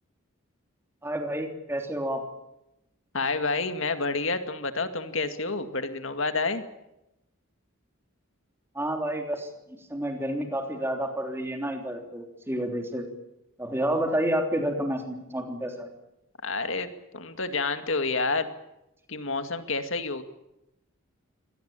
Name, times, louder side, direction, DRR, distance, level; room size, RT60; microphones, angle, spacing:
voice 1, 1.0-2.2 8.7-13.1 13.6-15.9, right 1 dB, 10° right, 4 dB, 3.3 m, -30 dB
voice 2, 3.1-6.6 16.4-16.9 17.1-18.5 19.1-20.2, left 3 dB, 65° left, 8 dB, 2.1 m, -29 dB
24.0 x 18.5 x 8.9 m, 0.89 s
head